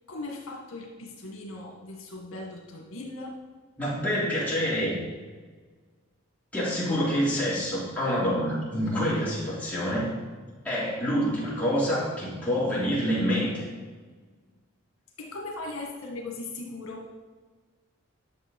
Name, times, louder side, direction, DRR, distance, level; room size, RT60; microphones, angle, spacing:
voice 1, 0.1-3.4 15.2-17.1, left 2 dB, 75° left, -1 dB, 1.9 m, -38 dB
voice 2, 3.8-5.0 6.5-10.1 10.6-13.6, equal, 5° left, -8 dB, 3.4 m, -27 dB
11.0 x 6.7 x 5.4 m, 1.4 s
head